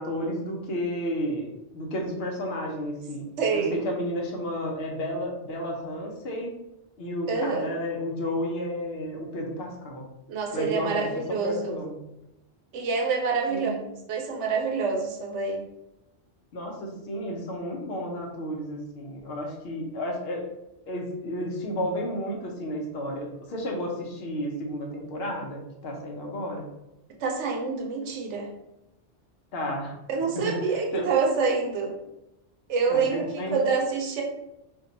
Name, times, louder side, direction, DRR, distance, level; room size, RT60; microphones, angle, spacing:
voice 1, 0.0-1.5 1.7-3.3 3.5-6.5 7.0-10.0 10.5-12.0 13.5-13.9 16.5-20.5 20.9-26.7 29.5-29.9 30.3-31.0 32.9-33.6, equal, 65° left, 0 dB, 0.9 m, -32 dB
voice 2, 3.4-3.8 7.3-7.7 10.3-11.7 12.7-13.7 14.1-15.6 27.2-28.5 30.1-32.0 32.7-34.2, right 4 dB, 85° right, 0 dB, 1.0 m, -27 dB
2.6 x 2.2 x 3.8 m, 0.91 s
omnidirectional pair, 1.2 m